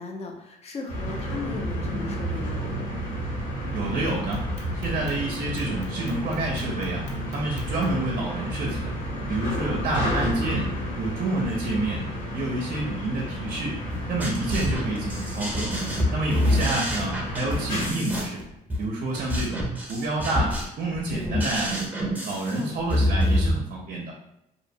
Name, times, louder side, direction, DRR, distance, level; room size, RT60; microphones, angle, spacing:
voice 1, 0.0-2.6 9.6-9.9 16.4-16.7 22.5-22.8, left 3 dB, 40° left, 1 dB, 0.5 m, -36 dB
sound 1, 0.9-17.9, equal, 60° left, 1.0 m, -31 dB
voice 2, 3.7-4.4 4.7-7.0 7.3-8.9 9.3-10.7 11.0-12.0 12.3-13.8 14.1-15.7 16.1-18.4 18.8-21.9 22.2-24.1, right 2 dB, 55° right, -1 dB, 0.5 m, -28 dB
Clock, 4.1-8.1, left 4 dB, 90° left, 0.6 m, -50 dB
sound 2, 13.9-23.5, left 1 dB, 10° right, 0.6 m, -27 dB
2.7 x 2.0 x 2.6 m, 0.84 s
cardioid pair, 115°, 16 cm